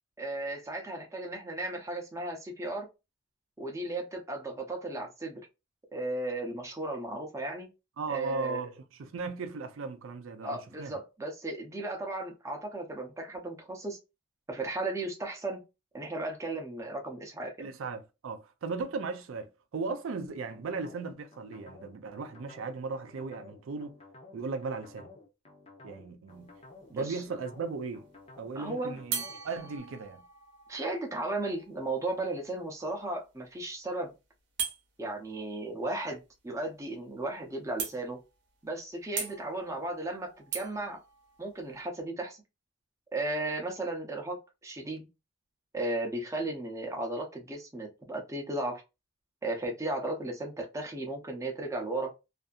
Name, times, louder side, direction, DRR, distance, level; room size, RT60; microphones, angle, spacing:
voice 1, 0.2-2.9 3.6-5.4 5.9-7.7 8.1-8.6 10.4-14.0 14.5-15.6 15.9-17.7 26.9-27.2 28.5-29.0 30.7-34.1 35.0-38.2 38.6-41.0 41.4-42.4 43.1-45.1 45.7-48.8 49.4-52.1, right 2 dB, 15° right, 0.6 m, -35 dB
voice 2, 8.0-8.7 9.0-11.0 17.6-24.0 24.3-25.1 25.8-26.5 26.9-28.0 28.4-30.2, right 4 dB, 75° right, 0.4 m, -37 dB
sound 1, 20.2-29.8, left 3 dB, 30° left, 0.6 m, -53 dB
sound 2, 26.3-26.8 29.1-32.8 34.6-34.8 36.8-36.9 37.2-37.3 37.8-38.4 39.2-41.9, right 6 dB, 55° right, 0.7 m, -40 dB
2.6 x 2.5 x 2.3 m
head